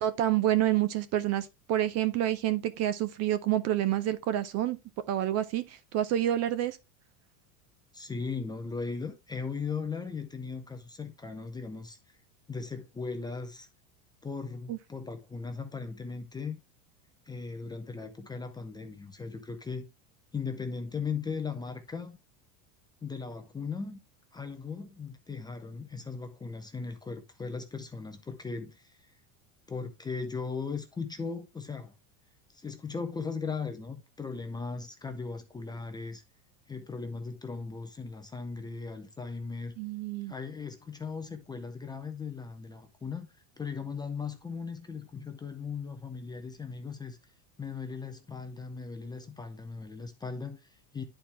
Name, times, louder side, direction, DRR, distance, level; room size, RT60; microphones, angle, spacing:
voice 1, 0.0-4.8 5.1-6.8 14.7-14.8 39.8-40.3, right 12 dB, 35° right, 0.5 m, -28 dB
voice 2, 7.9-12.2 12.5-13.7 14.2-16.6 17.3-19.9 20.3-22.2 23.0-24.0 24.3-29.1 29.7-31.9 32.5-36.2 36.7-39.7 40.3-43.3 43.6-47.2 47.6-51.0, left 5 dB, 10° left, 0.5 m, -38 dB
10.0 x 4.4 x 3.3 m
supercardioid pair, 140°, 45 cm